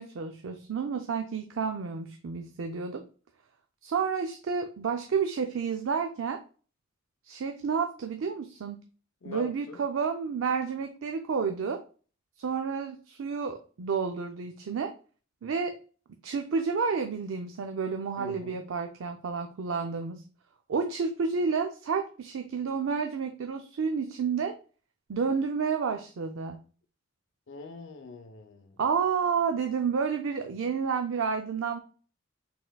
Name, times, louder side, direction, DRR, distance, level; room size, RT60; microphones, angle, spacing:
voice 1, 0.0-3.0 3.8-6.4 7.2-8.8 9.2-11.8 12.4-14.9 15.4-15.7 16.2-20.2 20.7-24.6 25.1-26.6 28.8-31.8, right 5 dB, 75° right, 0.4 m, -30 dB
voice 2, 9.2-9.9 18.2-18.6 27.5-28.8, left 4 dB, 70° left, 0.6 m, -44 dB
4.2 x 3.7 x 2.2 m
head